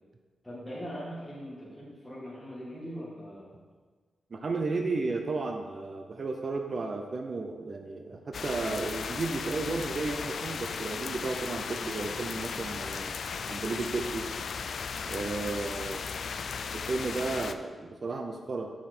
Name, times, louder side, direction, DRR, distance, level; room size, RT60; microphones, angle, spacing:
voice 1, 0.4-3.5, equal, ahead, -9 dB, 1.9 m, -41 dB
voice 2, 4.3-13.2 13.5-14.3 15.0-16.0 16.7-18.7, right 3 dB, 40° right, 4 dB, 0.6 m, -33 dB
sound 1, 8.3-17.6, left 5 dB, 60° left, 0.4 m, -36 dB
7.3 x 7.2 x 4.4 m, 1.4 s
wide cardioid pair, 155°, 0 cm